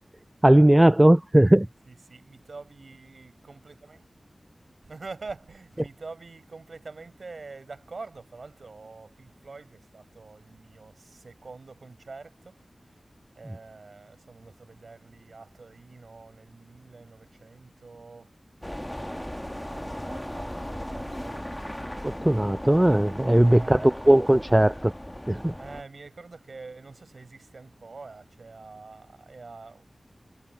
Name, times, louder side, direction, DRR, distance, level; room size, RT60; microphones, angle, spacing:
voice 1, 0.4-1.7 22.0-24.9 25.3-25.5, right 1 dB, 15° right, 0.4 m, -18 dB
voice 2, 1.9-4.1 4.8-13.0 13.3-18.3 19.4-21.6 23.5-24.1 25.6-29.9, right 3 dB, 75° right, 4.6 m, -45 dB
sound 1, 18.6-25.8, equal, 10° left, 1.1 m, -37 dB
wide cardioid pair, 65°, 0 cm